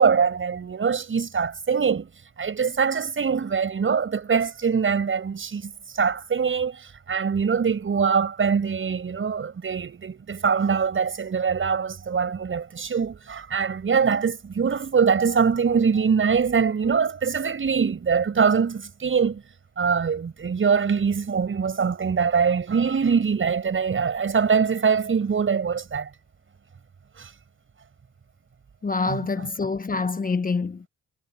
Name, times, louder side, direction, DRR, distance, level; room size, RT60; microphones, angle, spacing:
voice 1, 0.0-2.1 2.4-19.4 19.8-26.1 27.2-27.3 29.1-29.5, right 6 dB, 40° right, 7.2 m, -23 dB
voice 2, 28.8-30.9, left 4 dB, 30° left, 1.2 m, -26 dB
cardioid pair, 90°, 30 cm